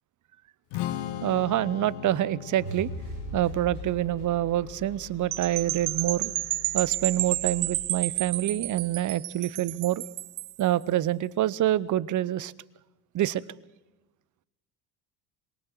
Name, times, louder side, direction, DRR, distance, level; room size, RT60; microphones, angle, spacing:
Strum, 0.7-7.0, left 11 dB, 60° left, 1.4 m, -39 dB
voice 1, 1.2-2.9 3.3-6.3 6.7-10.0 10.6-12.5 13.1-13.4, right 13 dB, 40° right, 21 dB, 0.8 m, -26 dB
sound 1, 2.6-8.7, left 1 dB, 90° left, 7.1 m, -42 dB
sound 2, 5.3-10.6, right 17 dB, 75° right, 0.9 m, -31 dB
26.5 x 22.5 x 4.7 m, 1.1 s
figure-of-eight pair, 55°, 49 cm